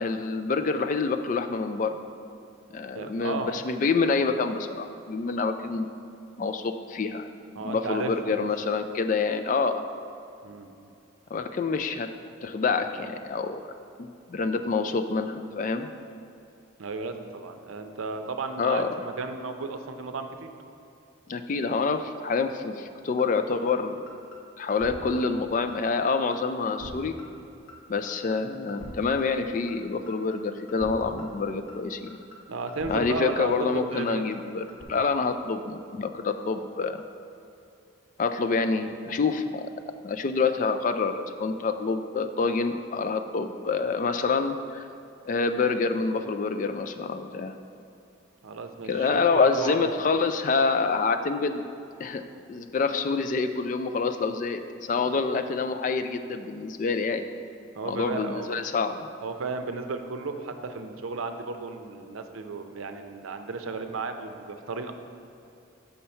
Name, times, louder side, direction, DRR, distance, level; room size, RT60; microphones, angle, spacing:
voice 1, 0.0-2.0 2.7-5.9 6.4-7.3 7.6-9.8 11.3-12.1 12.4-13.6 14.0-15.9 18.6-18.9 21.3-24.1 24.6-27.2 27.9-32.2 32.9-37.0 38.2-39.7 40.0-44.8 45.3-47.5 48.9-51.6 52.0-52.2 52.5-57.2 57.9-59.1, left 4 dB, 40° left, 8 dB, 0.3 m, -27 dB
voice 2, 2.9-3.6 7.6-8.5 10.4-10.7 16.8-20.5 32.5-33.5 33.9-34.2 48.4-49.9 55.1-55.2 57.8-58.5 59.2-64.9, right 4 dB, 85° right, 7 dB, 0.6 m, -34 dB
sound 1, 23.2-23.3 23.7-23.8 24.1-24.4 24.7-24.9 25.2-25.3 25.7-25.8 26.1-26.4 26.7-26.9 27.2-27.3 27.7-27.8 28.1-28.4 28.7-28.9 29.2-29.3 29.7-29.8 30.1-30.4 30.7-30.9 31.2-31.3 31.7-31.8 32.1-32.4 32.7-32.9 33.2-33.3 33.7-33.8 34.1-34.4 34.7-34.8, equal, 90° left, 1.3 m, -44 dB
6.9 x 5.6 x 4.3 m, 2.7 s
head